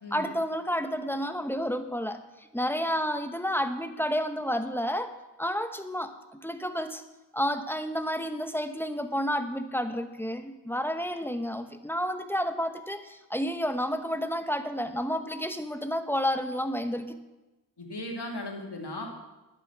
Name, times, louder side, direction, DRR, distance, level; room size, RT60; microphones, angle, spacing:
voice 1, 0.1-5.1 5.4-7.0 7.3-17.2, equal, 5° left, 8 dB, 1.1 m, -30 dB
voice 2, 17.8-19.1, left 1 dB, 75° left, 0 dB, 2.8 m, -37 dB
12.0 x 10.5 x 5.9 m, 1.1 s
wide cardioid pair, 65°, 40 cm